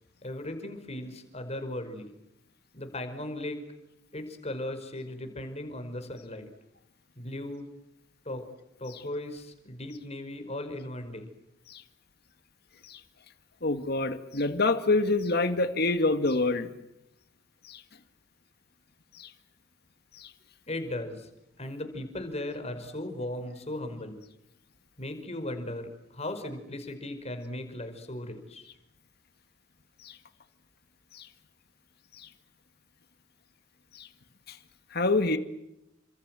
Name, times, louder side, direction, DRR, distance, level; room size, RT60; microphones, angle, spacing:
voice 1, 0.2-2.1 2.7-3.6 4.1-6.5 7.2-7.7 8.3-8.4 8.8-11.3 20.7-21.3 21.6-24.2 25.0-28.7, left 1 dB, 35° left, 7 dB, 5.2 m, -37 dB
voice 2, 13.6-16.7 17.6-17.8 19.2-19.3 20.2-20.3 30.0-30.2 31.1-31.3 32.2-32.3 33.9-34.1 34.5-34.6 34.9-35.4, left 2 dB, 55° left, 9 dB, 2.0 m, -27 dB
29.5 x 26.5 x 7.7 m, 0.86 s
head